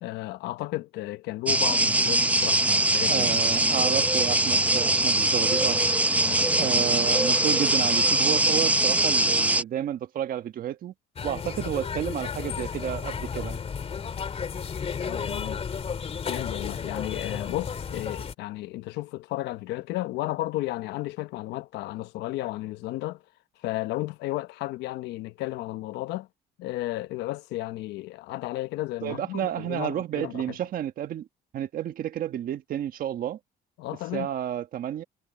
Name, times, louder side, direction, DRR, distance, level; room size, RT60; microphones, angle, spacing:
voice 1, 0.0-3.3 6.2-6.8 15.0-15.6 16.3-23.2 23.6-26.3 26.6-30.6 33.8-34.3, left 17 dB, 85° left, 0.9 m, -33 dB
sound 1, 1.5-9.6, right 2 dB, 10° right, 0.9 m, -22 dB
voice 2, 3.1-5.8 6.6-10.9 11.2-13.6 29.0-31.3 31.5-33.4 34.1-35.0, right 11 dB, 55° right, 1.5 m, -31 dB
sound 2, 11.2-18.3, left 6 dB, 35° left, 2.7 m, -33 dB
cardioid pair, 110°, 17 cm